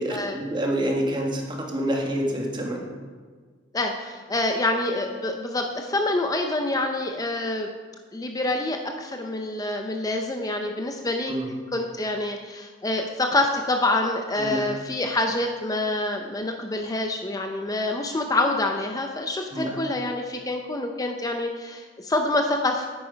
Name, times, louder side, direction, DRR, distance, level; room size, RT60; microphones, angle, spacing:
voice 1, 0.0-2.9 11.3-11.5 14.4-14.7 19.5-19.8, right 1 dB, 25° right, 1 dB, 1.7 m, -27 dB
voice 2, 3.7-7.7 8.1-11.3 11.7-22.9, left 2 dB, 20° left, 3 dB, 0.6 m, -26 dB
9.7 x 9.0 x 5.1 m, 1.5 s
head